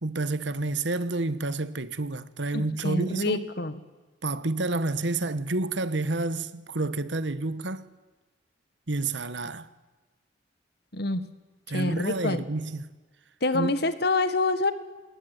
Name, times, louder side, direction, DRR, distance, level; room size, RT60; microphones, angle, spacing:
voice 1, 0.0-3.4 4.2-7.9 8.9-9.7 11.7-12.8 13.5-13.7, right 2 dB, 75° right, 1.3 m, -29 dB
voice 2, 2.5-3.8 10.9-11.2 11.7-12.4 13.4-14.7, left 2 dB, 60° left, 1.7 m, -26 dB
26.5 x 21.0 x 9.3 m
head